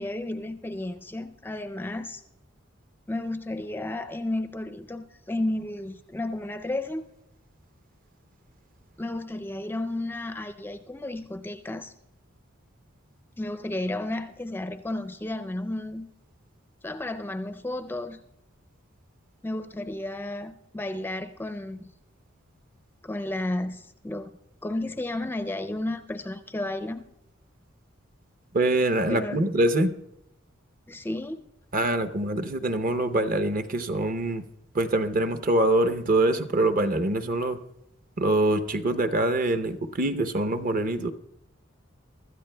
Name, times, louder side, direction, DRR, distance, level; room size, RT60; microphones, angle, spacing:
voice 1, 0.0-2.2 3.1-7.0 9.0-11.9 13.4-16.1 16.8-18.2 19.4-21.9 23.0-24.3 24.6-27.1 29.1-29.5 30.9-31.4, left 1 dB, 10° left, 8 dB, 0.4 m, -32 dB
voice 2, 28.5-29.9 31.7-34.4 34.7-37.6 38.2-41.1, right 2 dB, 45° right, 9 dB, 0.7 m, -24 dB
24.0 x 13.0 x 2.2 m, 0.85 s
head